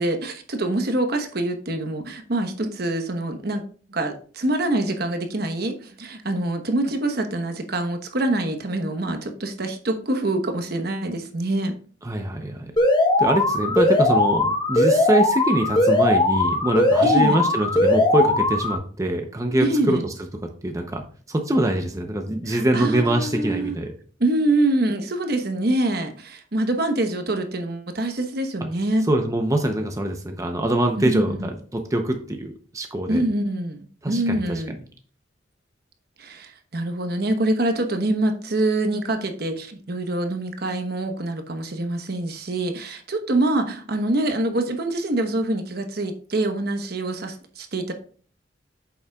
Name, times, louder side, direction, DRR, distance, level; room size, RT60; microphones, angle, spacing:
voice 1, 0.0-3.6 3.9-11.8 17.0-17.4 19.6-20.1 22.5-23.8 24.2-29.1 31.0-31.5 33.1-34.7 36.2-47.9, right 1 dB, 55° right, 7 dB, 1.0 m, -25 dB
voice 2, 12.0-12.7 13.2-20.0 20.6-23.9 29.1-33.2 34.0-34.4 34.7-34.8, right 1 dB, 15° right, 4 dB, 0.7 m, -24 dB
Alarm, 12.8-18.8, left 2 dB, 25° left, 1.1 m, -19 dB
8.7 x 7.0 x 2.3 m, 0.43 s
head